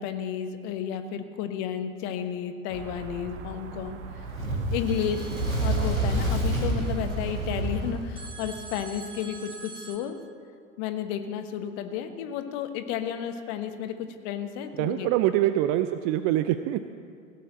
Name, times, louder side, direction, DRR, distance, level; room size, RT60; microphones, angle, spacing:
voice 1, 0.0-4.4 4.7-5.3 5.6-10.2 10.8-13.9 14.2-15.1, left 9 dB, 45° left, 8 dB, 1.2 m, -32 dB
sound 1, 2.7-8.0, right 6 dB, 60° right, 1.0 m, -40 dB
Fire, 4.2-8.8, right 1 dB, 90° right, 1.9 m, -28 dB
sound 2, 4.9-7.1 8.2-10.0, right 3 dB, 15° right, 1.6 m, -46 dB
voice 2, 14.8-16.8, right 13 dB, 35° right, 11 dB, 0.4 m, -24 dB
17.0 x 7.0 x 7.8 m, 2.2 s
figure-of-eight pair, 80°, 40 cm